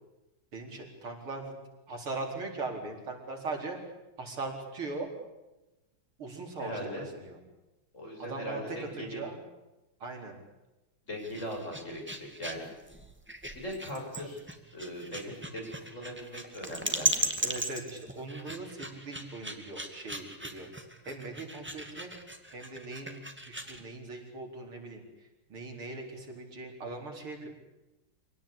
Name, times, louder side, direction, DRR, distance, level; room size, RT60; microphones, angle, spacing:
voice 1, 0.5-1.6 1.9-3.8 4.2-5.1 6.2-7.4 8.2-9.4 10.0-10.4 17.4-20.7 21.0-22.1 22.5-27.5, right 3 dB, 85° right, 1 dB, 5.2 m, -40 dB
voice 2, 6.6-7.1 7.9-9.2 11.1-12.7 13.5-14.4 14.7-17.3, equal, 35° left, 0 dB, 7.7 m, -39 dB
sound 1, 11.1-23.8, right 1 dB, 5° right, 2.0 m, -37 dB
26.0 x 18.0 x 8.8 m, 1.0 s
omnidirectional pair, 2.3 m